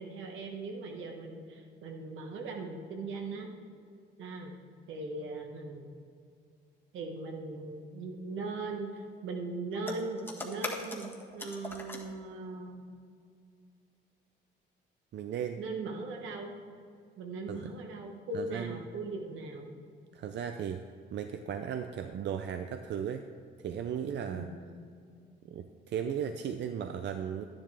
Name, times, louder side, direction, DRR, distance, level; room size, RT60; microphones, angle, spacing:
voice 1, 0.0-3.5 4.2-4.5 4.9-5.9 6.9-12.8 15.6-16.6 17.2-19.7 24.3-24.5, right 3 dB, 85° right, 2 dB, 1.5 m, -39 dB
sound 1, 9.7-12.0, left 2 dB, 10° left, 1.5 m, -40 dB
voice 2, 15.1-15.6 17.5-17.7 18.3-18.8 20.1-20.8 21.1-23.3 23.6-24.5 25.5-27.5, right 8 dB, 65° right, 7 dB, 0.5 m, -36 dB
11.0 x 10.5 x 3.4 m, 2.3 s
cardioid pair, 90°, 20 cm